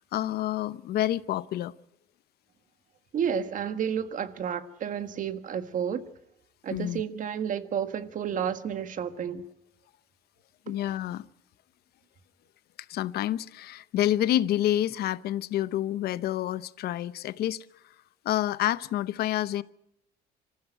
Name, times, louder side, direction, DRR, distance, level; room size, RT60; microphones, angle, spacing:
voice 1, 0.1-1.7 6.7-7.0 10.7-11.3 12.9-17.6 18.2-19.6, left 13 dB, 70° left, 0.8 m, -28 dB
voice 2, 3.1-6.1 6.6-9.5 10.7-10.8, right 8 dB, 50° right, 1.6 m, -31 dB
25.5 x 14.5 x 9.0 m
cardioid pair, 110°, 17 cm